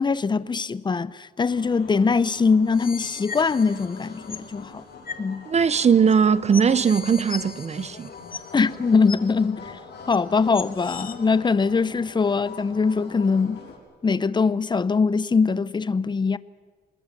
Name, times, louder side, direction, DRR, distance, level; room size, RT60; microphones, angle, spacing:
voice 1, 0.0-4.8 5.2-5.4 8.5-9.8 10.1-13.6 14.0-16.4, left 4 dB, 25° left, 0.7 m, -22 dB
sound 1, 1.5-13.8, left 4 dB, 75° left, 6.2 m, -43 dB
sound 2, 2.6-4.5 5.1-5.3 6.1-6.2 6.5-8.7 9.1-9.2 10.1-10.2 10.5-11.1, left 5 dB, 55° left, 1.6 m, -38 dB
voice 2, 5.5-8.1, right 6 dB, 40° right, 0.7 m, -19 dB
26.5 x 20.5 x 7.4 m
cardioid pair, 120°, 18 cm